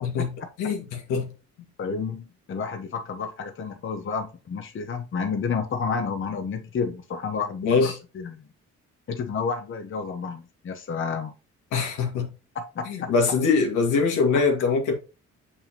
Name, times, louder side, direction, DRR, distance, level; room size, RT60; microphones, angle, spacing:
voice 1, 0.0-1.3 1.6-1.7 7.6-8.0 11.7-12.3 12.9-14.9, left 4 dB, 90° left, 1.9 m, -23 dB
voice 2, 1.8-8.5 9.1-11.3 12.5-13.1, left 5 dB, 40° left, 0.9 m, -30 dB
6.9 x 5.5 x 2.9 m
cardioid pair, 90°, 30 cm